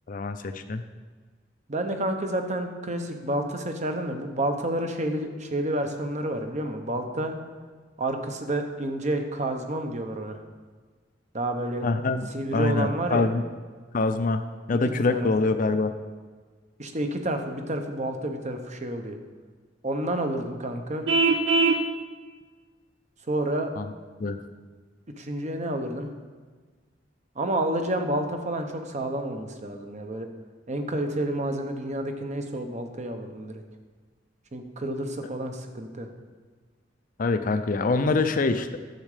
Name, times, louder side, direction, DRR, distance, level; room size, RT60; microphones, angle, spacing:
voice 1, 0.1-0.8 11.8-12.3 12.5-13.4 13.9-14.4 14.7-15.9 23.8-23.9 24.2-24.4 37.2-38.8, left 3 dB, 45° left, 8 dB, 0.5 m, -25 dB
voice 2, 1.7-7.3 8.0-10.4 11.3-11.9 12.3-13.3 15.1-15.5 16.8-19.2 19.8-21.1 23.3-23.7 25.2-26.1 27.3-30.3 30.7-33.6 34.5-36.1, right 1 dB, 40° right, 5 dB, 1.0 m, -29 dB
Vehicle horn car horn honking, 21.1-21.8, right 3 dB, 80° right, 0.7 m, -21 dB
10.5 x 7.4 x 5.0 m, 1.5 s
head